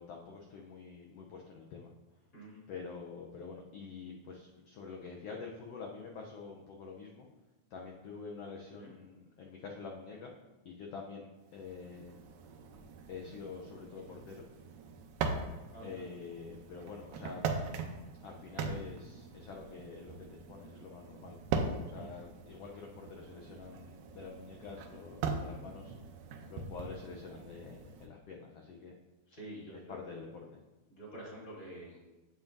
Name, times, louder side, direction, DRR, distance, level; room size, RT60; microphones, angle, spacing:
voice 1, 0.0-1.9 2.7-7.3 7.7-10.3 10.6-12.1 13.1-14.4 15.8-17.5 18.2-21.4 21.9-25.9 26.5-28.9 29.9-30.6, left 5 dB, 75° left, 0 dB, 1.4 m, -47 dB
sound 1, 11.5-28.1, right 4 dB, 85° right, 2.2 m, -41 dB
voice 2, 15.7-16.0 22.0-22.1 27.4-27.5 29.3-29.9 30.9-32.0, right 1 dB, 25° left, -6 dB, 2.9 m, -48 dB
10.5 x 7.7 x 2.6 m, 1.1 s
omnidirectional pair, 3.5 m